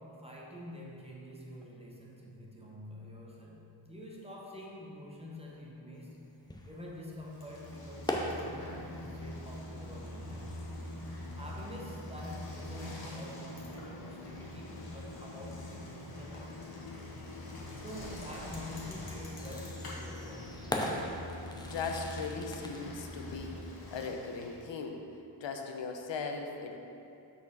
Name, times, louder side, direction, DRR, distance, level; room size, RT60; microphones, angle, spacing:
voice 1, 0.0-6.4 6.6-10.7 11.4-16.9 17.8-20.6, left 1 dB, 15° right, -4 dB, 0.8 m, -47 dB
sound 1, 6.0-24.0, left 1 dB, 10° left, 0.5 m, -43 dB
Bicycle, 7.2-24.7, left 1 dB, 55° left, 1.3 m, -44 dB
voice 2, 21.7-25.0 25.4-26.8, left 4 dB, 80° left, 3 dB, 0.8 m, -38 dB
6.1 x 4.3 x 5.9 m, 2.7 s
wide cardioid pair, 155°, 44 cm